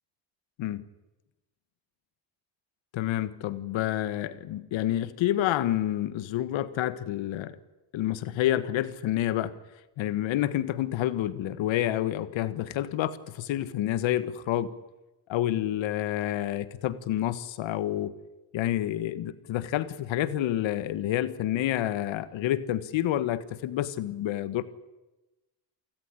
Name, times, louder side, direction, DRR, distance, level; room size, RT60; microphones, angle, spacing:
voice 1, 2.9-7.6 7.9-9.5 10.0-14.7 15.3-18.1 18.5-24.6, left 13 dB, 80° left, 14 dB, 1.6 m, -28 dB
28.5 x 15.5 x 10.0 m, 1.0 s
supercardioid pair, 75°, 45 cm